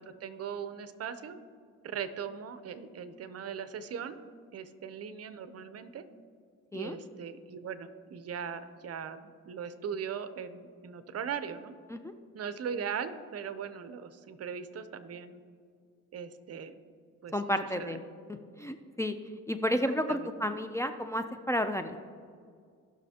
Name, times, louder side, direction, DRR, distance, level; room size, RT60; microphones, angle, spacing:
voice 1, 0.0-1.4 1.8-4.2 4.5-6.0 6.7-11.7 12.3-15.4 16.1-16.7 17.2-17.3 17.8-18.2 19.9-20.3, right 7 dB, 55° right, 11 dB, 0.7 m, -39 dB
voice 2, 17.3-18.0 18.6-19.2 19.5-22.0, equal, 10° left, 8 dB, 0.5 m, -31 dB
17.5 x 6.2 x 2.9 m, 2.1 s
cardioid pair, 90°, 30 cm